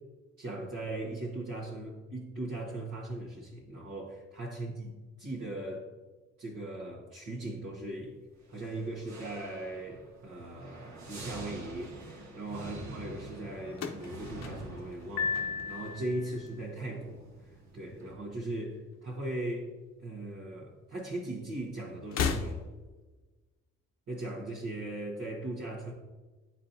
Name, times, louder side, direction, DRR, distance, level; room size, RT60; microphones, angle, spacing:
voice 1, 0.4-5.9 6.4-8.2 8.5-15.4 15.7-17.3 17.7-19.7 20.0-22.6 24.1-25.9, right 1 dB, 50° right, -5 dB, 1.4 m, -39 dB
sound 1, 8.4-18.1, right 2 dB, 65° right, 1.4 m, -47 dB
sound 2, 13.7-16.0 16.3-16.9 18.0-19.0 19.3-19.4 20.5-20.6 22.0-23.0, left 6 dB, 60° left, 0.8 m, -36 dB
Piano, 15.2-16.5, left 6 dB, 90° left, 0.9 m, -34 dB
9.6 x 4.3 x 2.7 m, 1.2 s
cardioid pair, 90°, 30 cm